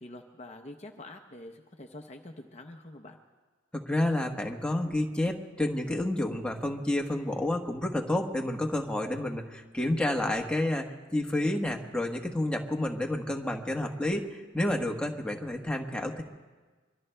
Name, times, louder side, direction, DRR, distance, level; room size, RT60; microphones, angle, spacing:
voice 1, 0.0-3.2, left 1 dB, 35° left, 4 dB, 0.7 m, -46 dB
voice 2, 3.7-16.2, left 1 dB, 5° left, 1 dB, 1.2 m, -30 dB
25.0 x 23.0 x 2.3 m, 1.3 s
head